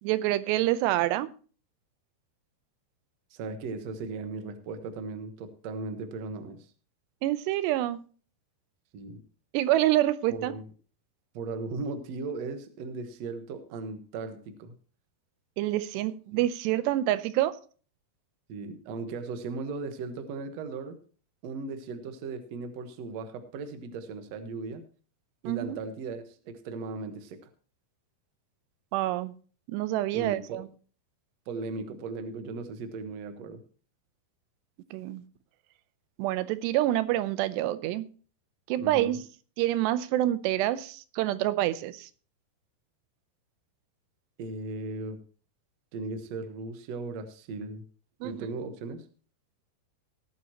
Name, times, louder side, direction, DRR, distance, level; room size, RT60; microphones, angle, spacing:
voice 1, 0.0-1.3 7.2-8.0 9.5-10.5 15.6-17.5 25.4-25.8 28.9-29.3 29.7-30.7 34.9-35.2 36.2-38.1 38.7-39.2 39.6-42.1 48.2-48.5, right 14 dB, 90° right, 15 dB, 2.9 m, -27 dB
voice 2, 3.3-6.7 8.9-9.2 10.3-10.6 11.3-14.7 16.3-16.4 18.5-21.0 21.4-24.8 25.4-27.4 30.1-30.6 31.5-33.6 38.8-39.2 44.4-45.2 45.9-47.8 48.2-49.0, right 3 dB, 65° right, 8 dB, 1.8 m, -37 dB
18.0 x 9.4 x 2.9 m, 0.39 s
omnidirectional pair, 4.8 m